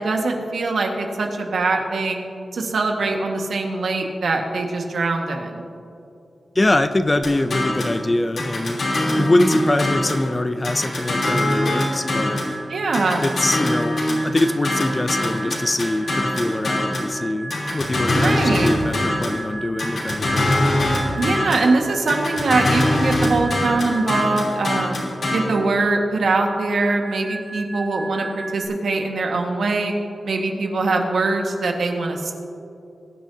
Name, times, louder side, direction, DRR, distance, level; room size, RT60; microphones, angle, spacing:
voice 1, 0.0-2.2 2.5-5.6 9.1-9.3 12.7-13.3 18.1-18.7 21.2-25.0 25.3-29.9 30.2-32.3, right 3 dB, 85° right, 2 dB, 1.6 m, -22 dB
voice 2, 6.6-8.8 9.2-12.4 13.1-20.6, left 1 dB, 20° left, 10 dB, 0.4 m, -23 dB
sound 1, 7.2-8.0 8.4-10.3 10.6-12.5 12.9-17.1 17.5-19.4 19.8-21.7 22.1-25.4, left 1 dB, 65° left, 3.2 m, -22 dB
sound 2, 10.9-24.6 26.5-28.7, right 3 dB, 60° right, 2.3 m, -36 dB
22.0 x 10.0 x 2.8 m, 2.7 s
wide cardioid pair, 175°, 0 cm